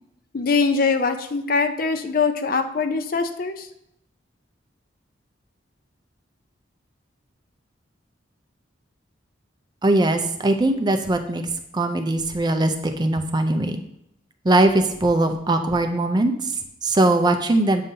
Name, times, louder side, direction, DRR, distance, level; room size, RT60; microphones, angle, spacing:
voice 1, 0.3-3.7, left 4 dB, 50° left, 7 dB, 0.5 m, -22 dB
voice 2, 9.8-13.8 14.4-17.8, right 2 dB, 20° right, 6 dB, 0.4 m, -21 dB
8.5 x 5.2 x 2.7 m, 0.79 s
head